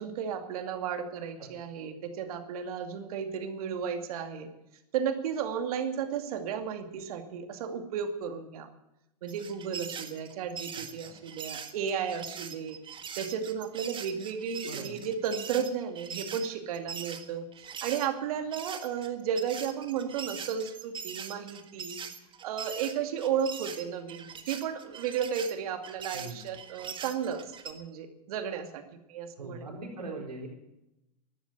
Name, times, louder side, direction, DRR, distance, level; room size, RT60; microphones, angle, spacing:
voice 1, 0.0-4.5 4.9-8.7 9.2-12.8 13.2-17.4 17.8-22.0 22.4-28.8 29.1-29.7, right 7 dB, 65° right, 6 dB, 2.4 m, -33 dB
sound 1, 9.3-18.1 18.5-27.7, right 7 dB, 25° right, 1.7 m, -42 dB
voice 2, 29.4-30.5, right 3 dB, 90° right, 1 dB, 4.4 m, -40 dB
14.5 x 12.0 x 8.1 m, 0.89 s
hypercardioid pair, 105°, 20 cm